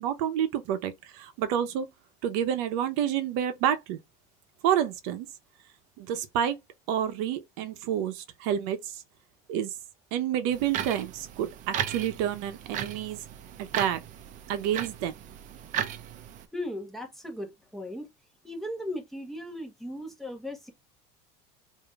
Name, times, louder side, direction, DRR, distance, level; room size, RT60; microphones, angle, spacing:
voice 1, 0.0-1.9 2.2-4.0 4.6-5.3 6.0-6.6 6.9-9.0 9.5-9.8 10.1-13.2 13.6-14.0 14.5-15.1, right 10 dB, 70° right, 0.8 m, -29 dB
sound 1, 10.5-16.5, right 10 dB, 40° right, 0.6 m, -36 dB
voice 2, 16.5-18.1 18.4-20.7, left 1 dB, ahead, 1.1 m, -37 dB
5.0 x 2.7 x 2.4 m
supercardioid pair, 140°, 20 cm